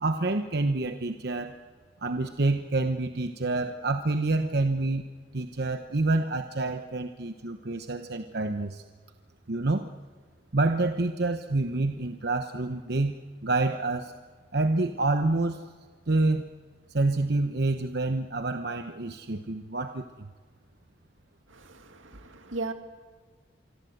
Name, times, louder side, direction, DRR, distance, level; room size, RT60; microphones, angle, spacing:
voice 1, 0.0-1.6 2.0-5.1 5.3-8.8 9.5-9.9 10.5-13.1 13.4-14.1 14.5-15.6 16.1-16.5 16.9-20.3, right 2 dB, 55° right, 7 dB, 1.0 m, -27 dB
voice 2, 21.5-22.7, right 3 dB, 85° right, 6 dB, 2.4 m, -37 dB
26.0 x 24.5 x 8.0 m, 1.5 s
head